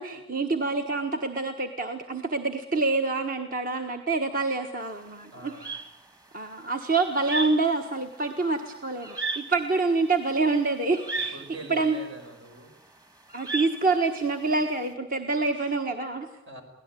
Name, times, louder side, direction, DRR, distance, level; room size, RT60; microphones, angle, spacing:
voice 1, 0.0-5.5 6.3-11.4 11.7-11.9 13.3-16.3, right 3 dB, 45° right, 5 dB, 1.4 m, -27 dB
sound 1, 4.8-14.8, right 3 dB, 20° right, 1.7 m, -35 dB
voice 2, 5.3-5.7 11.3-12.7 15.5-15.7 16.5-16.6, right 2 dB, 75° right, 5 dB, 5.5 m, -43 dB
24.0 x 18.0 x 9.1 m, 0.89 s
head